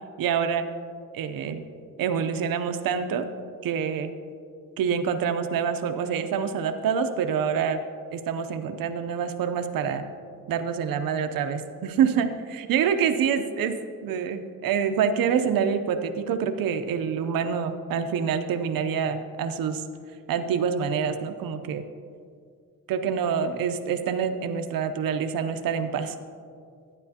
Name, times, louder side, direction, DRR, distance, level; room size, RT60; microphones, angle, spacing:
voice 1, 0.2-0.7 1.1-1.6 2.0-3.3 3.6-4.1 4.8-7.8 8.1-10.0 10.5-12.3 12.7-19.8 20.3-21.8 22.9-26.1, right 7 dB, 90° right, 9 dB, 0.7 m, -26 dB
12.0 x 9.8 x 2.8 m, 2.3 s
cardioid pair, 160°, 33 cm